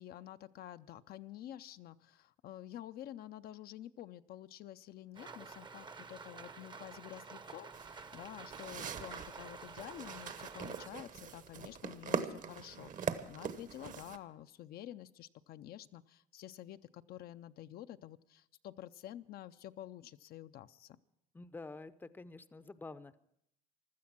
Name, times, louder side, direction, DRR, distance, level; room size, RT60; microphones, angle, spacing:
voice 1, 0.0-21.0, left 12 dB, 65° left, 11 dB, 0.5 m, -49 dB
Rain, 5.2-10.9, right 4 dB, 25° right, 0.7 m, -50 dB
sound 1, 7.7-14.2, right 7 dB, 50° right, 1.1 m, -42 dB
voice 2, 21.3-23.2, left 3 dB, 10° left, 14 dB, 0.5 m, -48 dB
16.0 x 12.5 x 6.0 m, 0.75 s
cardioid pair, 110°, 17 cm